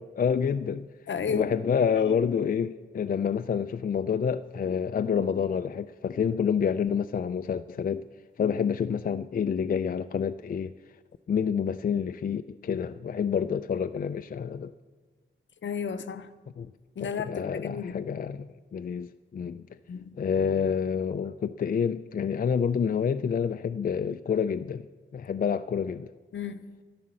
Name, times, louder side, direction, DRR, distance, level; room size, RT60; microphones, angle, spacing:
voice 1, 0.0-0.9 1.3-8.1 8.4-10.7 11.3-14.7 16.6-16.7 17.0-19.6 20.2-24.9 25.1-26.1, left 7 dB, 45° left, 0.4 m, -28 dB
voice 2, 1.1-1.5 15.6-16.3 17.0-18.0 19.9-20.1 26.3-26.8, left 6 dB, 65° left, 0.8 m, -33 dB
11.0 x 11.0 x 7.5 m
cardioid pair, 85°, 20 cm